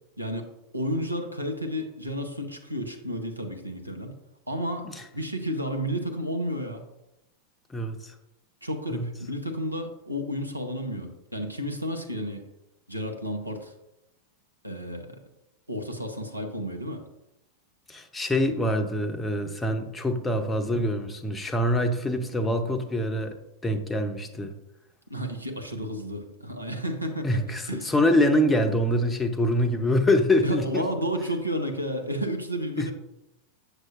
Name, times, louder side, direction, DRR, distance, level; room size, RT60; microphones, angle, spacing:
voice 1, 0.2-4.2 4.5-4.9 5.1-6.8 8.6-12.5 12.9-13.7 14.6-15.2 15.7-17.0 25.1-27.4 27.7-27.9 30.4-32.9, equal, 85° right, 4 dB, 0.9 m, -32 dB
voice 2, 7.7-8.1 8.9-9.1 17.9-23.4 23.6-24.5 27.2-30.9 32.8-32.9, left 1 dB, 10° left, 7 dB, 0.7 m, -25 dB
7.6 x 6.6 x 2.5 m, 0.91 s
figure-of-eight pair, 90°, 0 cm